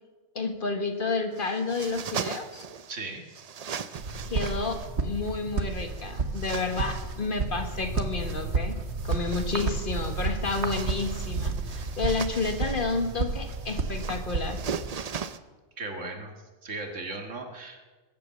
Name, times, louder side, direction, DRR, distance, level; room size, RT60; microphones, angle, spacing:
voice 1, 0.4-2.6 4.3-8.8 9.0-14.6, left 3 dB, 45° left, 6 dB, 1.7 m, -30 dB
sound 1, 1.3-3.0 3.3-4.9 5.6-7.3 8.9-15.4, right 6 dB, 45° right, 0.5 m, -39 dB
voice 2, 2.9-3.2 15.8-16.3 16.6-17.8, right 3 dB, 85° right, 4 dB, 2.3 m, -36 dB
sound 2, 4.0-14.9, right 4 dB, 65° right, 1.5 m, -32 dB
20.5 x 8.5 x 7.6 m, 1.3 s
omnidirectional pair, 1.2 m